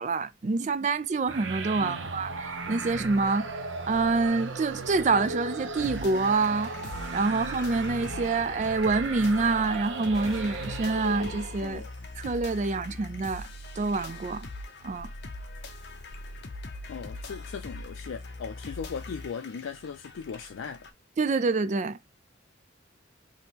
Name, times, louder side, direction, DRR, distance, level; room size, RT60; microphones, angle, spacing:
voice 1, 0.0-3.5 3.9-6.7 7.1-11.8 12.2-13.5 13.8-14.5 14.8-15.1 21.2-22.0, right 3 dB, 35° right, 0.3 m, -27 dB
sound 1, 1.3-11.8, right 3 dB, 75° right, 0.6 m, -36 dB
voice 2, 1.8-2.1 11.6-11.9 16.9-20.9, left 6 dB, 85° left, 0.4 m, -38 dB
sound 2, 5.8-20.9, left 2 dB, 55° left, 0.8 m, -42 dB
sound 3, 10.1-12.2 17.7-17.8 19.6-19.7, equal, ahead, 1.3 m, -51 dB
3.5 x 2.8 x 2.8 m
head